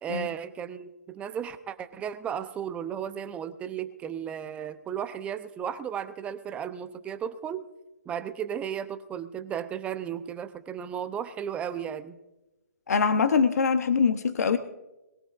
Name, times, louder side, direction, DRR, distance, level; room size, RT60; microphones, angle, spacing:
voice 1, 0.0-7.6 8.1-12.2, right 8 dB, 15° right, 11 dB, 0.7 m, -34 dB
voice 2, 12.9-14.6, left 5 dB, 65° left, 10 dB, 0.9 m, -23 dB
21.5 x 16.5 x 2.5 m, 1.0 s
hypercardioid pair, 140°, 9 cm